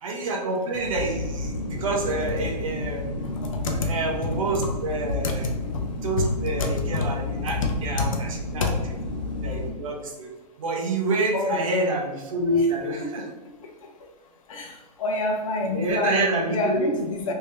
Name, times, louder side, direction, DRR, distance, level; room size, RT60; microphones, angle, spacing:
voice 1, 0.0-3.1 3.8-5.5 6.0-8.7 9.4-10.3 10.6-13.2 15.7-16.9, right 2 dB, 50° right, 0 dB, 0.9 m, -27 dB
sound 1, 0.9-9.7, left 2 dB, 80° left, 1.5 m, -31 dB
voice 2, 11.3-11.8 12.5-12.7 14.5-14.7 15.0-17.3, left 3 dB, 55° left, 2 dB, 0.8 m, -27 dB
3.4 x 2.8 x 3.3 m, 1.2 s
hypercardioid pair, 160°, 21 cm